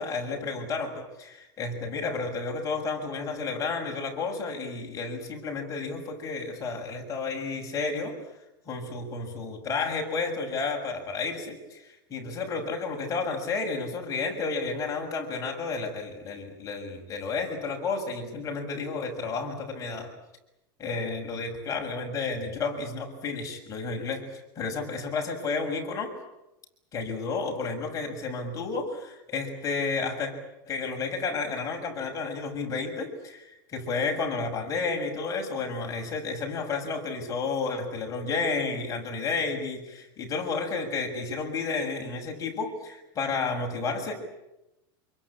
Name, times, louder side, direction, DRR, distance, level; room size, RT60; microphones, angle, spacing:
voice 1, 0.0-8.2 8.6-20.1 20.8-26.1 26.9-30.3 30.7-44.1, left 4 dB, 25° left, 2 dB, 6.8 m, -31 dB
27.0 x 23.5 x 8.7 m, 0.94 s
supercardioid pair, 140°, 13 cm